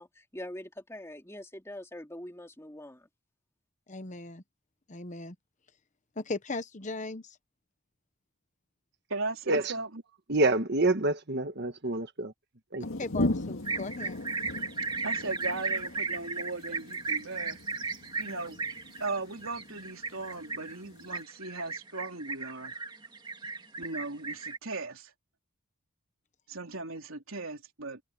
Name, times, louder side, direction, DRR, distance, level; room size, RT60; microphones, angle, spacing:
voice 1, 0.0-3.1, left 1 dB, 15° left, 2.6 m, -43 dB
voice 2, 3.9-4.4 4.9-5.3 6.2-7.4 13.0-14.2, left 3 dB, 35° left, 1.0 m, -37 dB
voice 3, 9.1-10.0 14.9-17.6 18.2-18.6 19.0-22.7 23.8-25.1 26.5-28.0, right 3 dB, 75° right, 3.5 m, -37 dB
voice 4, 10.3-12.3 12.7-12.8, right 2 dB, 50° right, 1.5 m, -27 dB
sound 1, 12.8-21.2, left 2 dB, 80° left, 2.0 m, -38 dB
sound 2, 13.6-24.6, right 4 dB, 20° right, 2.1 m, -35 dB
head